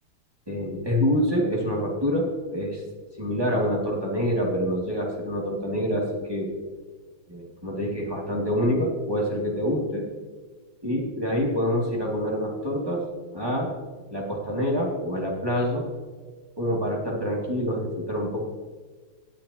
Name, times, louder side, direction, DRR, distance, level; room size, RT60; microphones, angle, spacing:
voice 1, 0.5-2.8 3.2-6.5 7.3-10.1 10.8-13.0 13.3-13.7 14.1-15.8 16.6-18.4, equal, 10° right, -3 dB, 2.3 m, -26 dB
17.0 x 9.9 x 2.9 m, 1.4 s
omnidirectional pair, 2.3 m